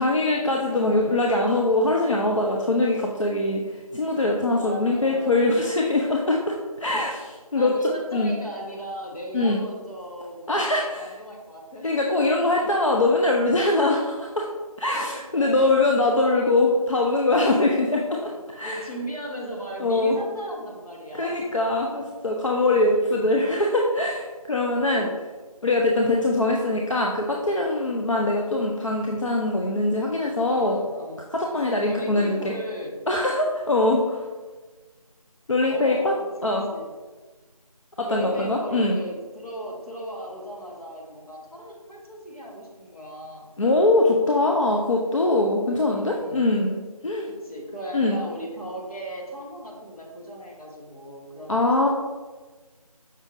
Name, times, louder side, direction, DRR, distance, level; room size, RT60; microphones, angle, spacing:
voice 1, 0.0-8.3 9.3-9.6 10.5-11.1 11.8-14.5 14.8-18.8 19.8-20.2 21.2-25.1 25.6-30.8 31.3-32.5 33.1-34.2 35.5-36.1 36.4-36.6 38.0-39.0 43.6-46.8 47.0-47.3 47.9-48.2 51.5-51.9, left 2 dB, 55° left, -1 dB, 0.4 m, -22 dB
voice 2, 0.5-1.2 4.5-5.6 7.6-13.0 14.9-16.9 18.1-21.5 22.6-23.5 24.9-25.1 30.5-31.2 31.6-33.0 35.7-36.9 38.1-43.5 45.6-46.5 47.3-51.9, right 1 dB, 75° left, -1 dB, 1.2 m, -38 dB
5.3 x 3.3 x 2.5 m, 1.3 s
figure-of-eight pair, 175°, 19 cm